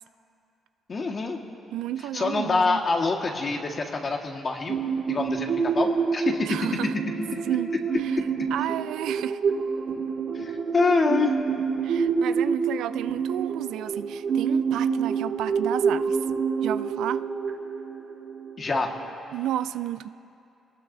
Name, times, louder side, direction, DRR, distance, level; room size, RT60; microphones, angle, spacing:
voice 1, 0.9-1.4 2.1-4.8 5.1-6.6 10.3-11.3 18.6-18.9, left 4 dB, 35° left, 2 dB, 1.7 m, -26 dB
voice 2, 1.7-2.8 6.5-6.9 7.5-7.7 8.0-8.1 8.5-9.4 11.8-16.2 16.6-17.3 19.3-20.1, right 12 dB, 90° right, 13 dB, 0.4 m, -31 dB
sound 1, 4.7-19.1, right 6 dB, 65° right, 3.1 m, -27 dB
27.5 x 19.0 x 2.7 m, 2.7 s
cardioid pair, 110°, 0 cm